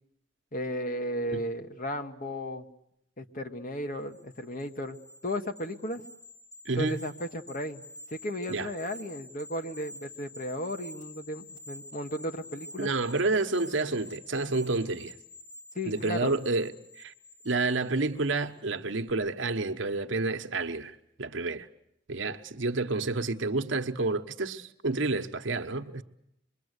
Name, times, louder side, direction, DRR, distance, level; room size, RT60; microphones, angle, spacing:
voice 1, 0.5-2.7 3.2-5.0 5.2-6.0 6.8-7.8 8.1-12.9 15.7-16.4, equal, 40° left, 1.4 m, -35 dB
sound 1, 4.0-18.6 18.9-19.1, left 2 dB, 20° left, 4.8 m, -49 dB
voice 2, 6.6-7.0 8.5-8.7 12.8-15.1 15.9-16.7 17.0-17.1 17.4-21.7 22.1-26.0, right 3 dB, 65° right, 1.1 m, -29 dB
26.0 x 22.5 x 8.2 m
head